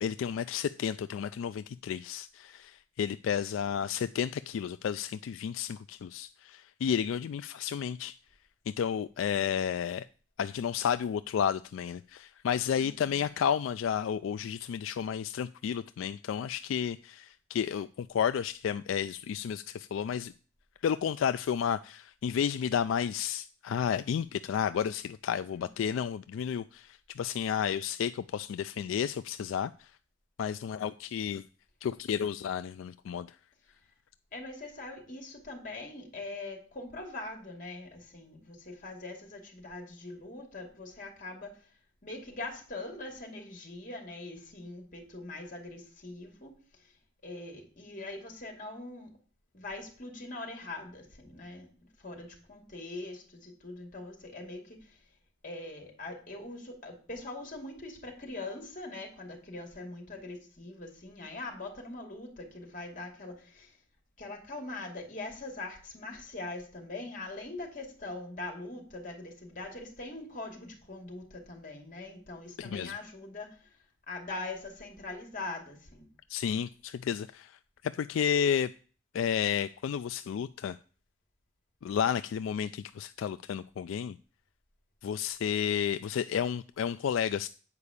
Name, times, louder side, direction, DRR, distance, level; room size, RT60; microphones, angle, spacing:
voice 1, 0.0-8.2 8.8-10.0 10.4-20.3 20.8-29.9 30.4-31.4 31.8-33.4 72.6-72.9 76.3-78.7 79.1-80.8 81.8-84.2 85.0-87.5, left 8 dB, 75° left, 0.3 m, -32 dB
voice 2, 3.7-4.0 12.7-13.2 34.3-41.6 42.0-46.5 47.2-49.1 49.5-51.7 52.0-55.0 55.4-63.7 64.2-73.7 74.1-76.1, left 2 dB, 45° left, 2.4 m, -42 dB
8.3 x 4.9 x 6.9 m
head